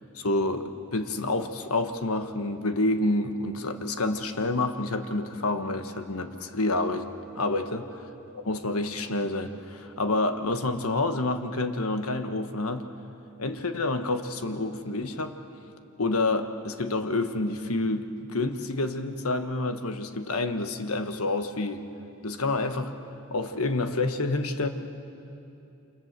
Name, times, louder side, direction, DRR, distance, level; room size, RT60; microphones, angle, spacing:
voice 1, 0.0-7.1 7.3-7.9 8.3-12.9 13.4-15.3 16.0-21.9 22.2-22.9 23.3-24.7, left 2 dB, 85° left, 8 dB, 1.4 m, -28 dB
29.0 x 26.5 x 7.6 m, 2.8 s
head